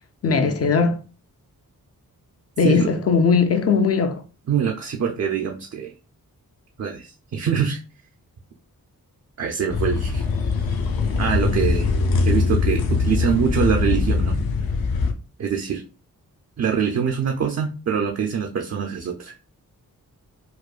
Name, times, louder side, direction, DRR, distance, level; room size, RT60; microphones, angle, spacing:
voice 1, 0.2-1.0 2.6-4.2, left 5 dB, 45° left, 0.4 m, -19 dB
voice 2, 4.5-5.9 6.8-7.8 9.4-10.3 11.2-11.9 12.2-14.4 15.4-15.8 16.6-19.4, right 7 dB, 45° right, 0.4 m, -24 dB
sound 1, 9.7-15.1, left 4 dB, 75° left, 0.7 m, -22 dB
4.7 x 2.1 x 2.4 m
wide cardioid pair, 150°, 36 cm